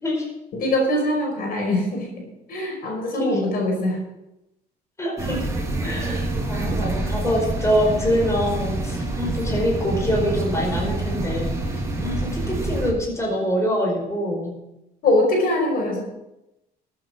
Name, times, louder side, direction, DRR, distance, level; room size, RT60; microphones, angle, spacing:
voice 1, 0.5-4.0 15.0-16.0, left 1 dB, 60° left, 1 dB, 5.3 m, -23 dB
voice 2, 5.0-5.5 5.8-11.5 12.0-14.5, equal, 15° left, -1 dB, 4.7 m, -24 dB
sound 1, 5.2-12.9, right 2 dB, 15° right, 3.0 m, -27 dB
13.5 x 8.8 x 6.5 m, 0.92 s
cardioid pair, 110°, 17 cm